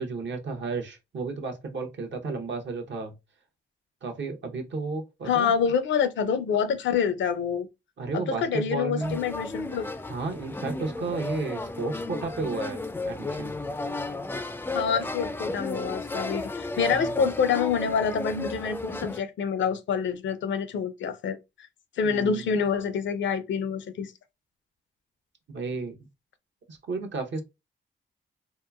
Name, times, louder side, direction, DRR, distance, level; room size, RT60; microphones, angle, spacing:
voice 1, 0.0-3.1 4.0-5.5 8.0-9.2 10.1-13.6 16.9-17.1 22.0-22.6 25.5-26.1 26.7-27.4, right 3 dB, 65° right, 0.9 m, -33 dB
voice 2, 5.3-7.7 8.1-9.9 14.7-21.7 22.0-24.1, left 6 dB, 65° left, 0.5 m, -27 dB
sound 1, 9.0-19.2, left 2 dB, 10° left, 0.3 m, -34 dB
2.8 x 2.4 x 2.3 m
supercardioid pair, 45°, 20 cm